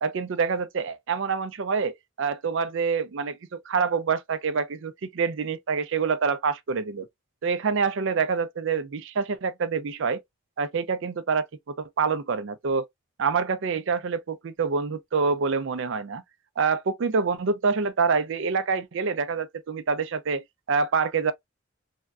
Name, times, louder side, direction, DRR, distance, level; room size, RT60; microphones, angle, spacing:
voice 1, 0.0-7.1 7.4-10.2 10.6-12.9 13.2-16.2 16.6-21.3, right 5 dB, 55° right, 0.4 m, -26 dB
3.3 x 2.2 x 2.4 m
head